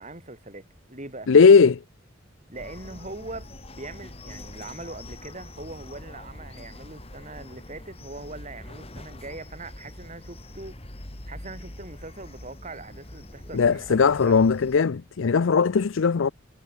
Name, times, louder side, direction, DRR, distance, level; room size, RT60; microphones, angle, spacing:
voice 1, 0.0-1.3 2.5-10.8 11.2-14.4, right 2 dB, 35° right, 4.9 m, -41 dB
voice 2, 1.3-1.8 13.5-16.3, left 5 dB, 70° left, 0.5 m, -18 dB
sound 1, 2.5-14.8, left 1 dB, 30° left, 2.4 m, -43 dB
head